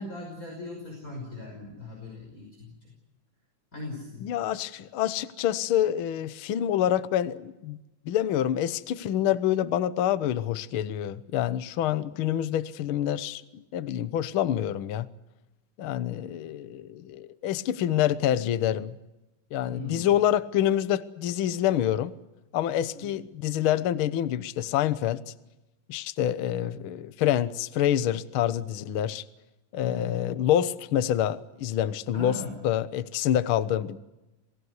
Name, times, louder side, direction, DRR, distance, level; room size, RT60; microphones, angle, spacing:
voice 1, 0.0-2.9 3.7-4.3 19.7-20.1 22.9-23.1 29.8-30.2 32.1-32.5, left 2 dB, 25° left, 0 dB, 6.1 m, -39 dB
voice 2, 4.2-7.8 8.0-15.1 15.8-18.9 19.5-22.1 22.5-25.3 25.9-29.2 29.7-32.4 32.6-34.0, left 11 dB, 65° left, 13 dB, 1.4 m, -27 dB
28.5 x 19.0 x 8.2 m, 1.0 s
omnidirectional pair, 3.6 m